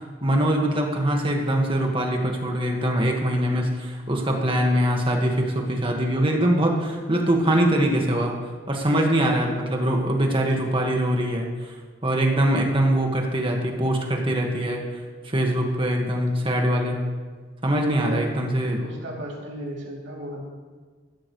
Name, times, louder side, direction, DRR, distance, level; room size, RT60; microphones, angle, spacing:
voice 1, 0.2-8.3 8.7-11.5 12.0-14.8 15.2-17.0 17.6-18.8, right 1 dB, 30° right, 1 dB, 1.7 m, -23 dB
voice 2, 17.8-20.4, right 1 dB, 80° right, -3 dB, 3.2 m, -36 dB
15.5 x 12.5 x 3.2 m, 1.5 s
head